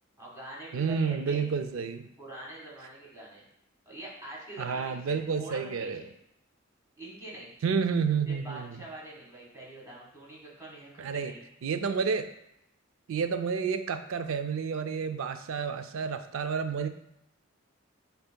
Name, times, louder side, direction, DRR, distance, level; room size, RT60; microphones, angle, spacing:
voice 1, 0.2-1.4 2.2-3.4 3.8-6.1 7.0-7.5 8.2-11.4, right 2 dB, 15° right, -6 dB, 1.5 m, -44 dB
voice 2, 0.7-2.1 4.6-6.0 7.6-8.7 11.0-11.3 11.6-12.3 13.1-16.9, right 6 dB, 85° right, 8 dB, 0.4 m, -30 dB
7.8 x 2.8 x 2.2 m, 0.80 s
head